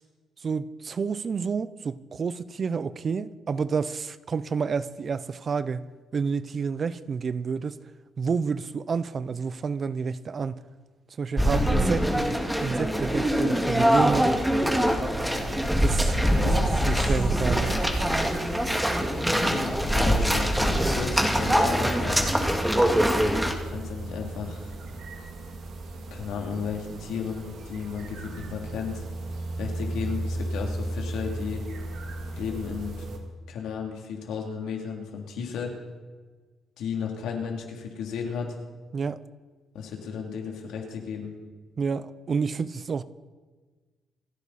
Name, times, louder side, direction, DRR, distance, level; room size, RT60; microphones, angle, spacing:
voice 1, 0.4-7.8 8.2-10.6 11.2-14.3 15.8-16.2 16.6-17.8 38.9-39.2 41.8-43.0, right 5 dB, 45° right, 0.7 m, -29 dB
sound 1, 11.4-23.5, equal, 5° right, 2.1 m, -23 dB
sound 2, 15.3-33.2, right 2 dB, 70° right, 2.4 m, -36 dB
voice 2, 16.3-17.1 19.3-22.3 23.6-24.7 26.1-29.0 29.6-31.6 32.3-33.0 33.5-35.8 36.8-38.6 39.7-41.3, left 6 dB, 85° left, 3.0 m, -34 dB
28.0 x 10.0 x 4.2 m
cardioid pair, 90°, 0 cm